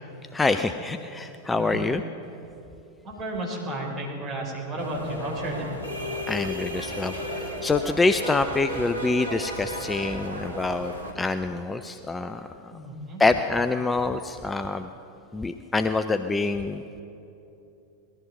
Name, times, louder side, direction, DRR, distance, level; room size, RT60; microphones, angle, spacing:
voice 1, 0.3-2.0 6.3-12.7 13.2-14.9 15.3-16.8, left 3 dB, 10° left, 9 dB, 0.5 m, -26 dB
voice 2, 3.0-5.7 12.7-13.2, right 1 dB, 35° right, -2 dB, 4.3 m, -33 dB
sound 1, 4.8-11.1, equal, 80° right, 1.9 m, -34 dB
19.5 x 13.0 x 5.4 m, 2.9 s
figure-of-eight pair, 90°, 0 cm